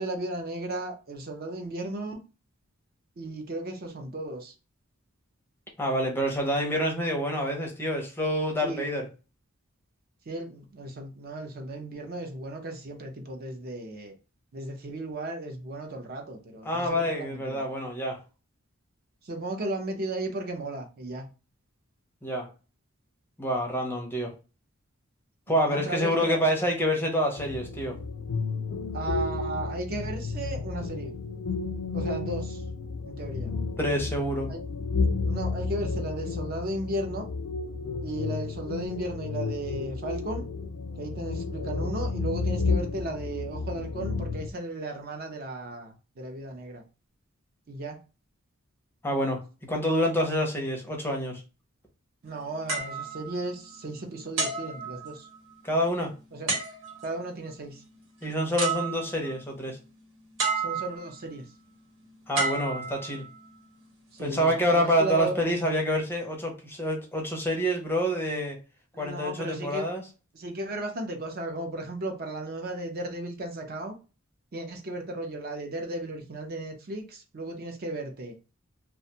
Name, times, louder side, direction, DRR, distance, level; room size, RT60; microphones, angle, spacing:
voice 1, 0.0-2.2 3.2-4.5 8.6-8.8 10.3-14.1 14.5-16.9 17.2-17.5 19.3-21.2 25.6-26.5 28.9-31.1 31.9-32.5 33.1-33.5 34.5-34.6 35.2-37.2 38.0-40.4 41.0-45.9 46.2-46.8 47.7-48.0 52.2-55.2 56.3-56.5 57.0-57.8 60.6-61.4 64.2-65.4 69.0-69.9 70.4-73.9 74.5-77.0 77.3-78.3, right 2 dB, 45° right, 0.5 m, -35 dB
voice 2, 5.8-9.1 16.6-18.2 22.2-22.5 23.4-24.3 25.5-28.0 33.8-34.5 49.0-51.4 55.6-56.1 58.2-59.8 62.3-63.2 64.2-68.6 69.0-70.1, equal, 10° left, 0.5 m, -27 dB
sound 1, 27.4-44.5, left 4 dB, 60° left, 0.3 m, -32 dB
sound 2, 52.7-53.9 54.4-55.5 56.5-57.2 58.2-58.3 58.6-59.4 60.4-61.2 62.3-63.5 64.2-64.4, right 3 dB, 75° right, 1.1 m, -31 dB
2.5 x 2.2 x 2.7 m
head